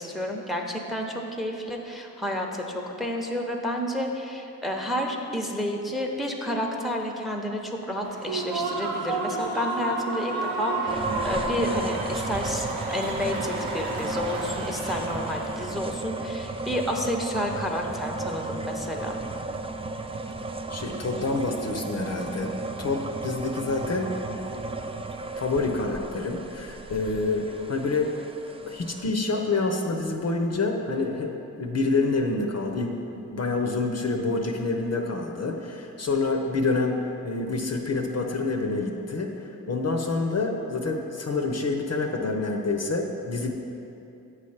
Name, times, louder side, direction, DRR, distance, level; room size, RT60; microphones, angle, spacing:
voice 1, 0.0-10.3 10.6-19.2, left 1 dB, ahead, 2 dB, 0.8 m, -30 dB
Human voice / Cheering / Applause, 8.0-15.7, right 3 dB, 85° right, 0.9 m, -31 dB
sound 1, 10.9-29.1, right 2 dB, 15° right, 0.4 m, -34 dB
voice 2, 20.7-22.5 22.8-24.1 25.4-28.2 28.7-31.3 31.6-43.5, left 3 dB, 45° left, 2 dB, 0.7 m, -27 dB
8.1 x 3.2 x 5.6 m, 2.8 s
cardioid pair, 50°, 36 cm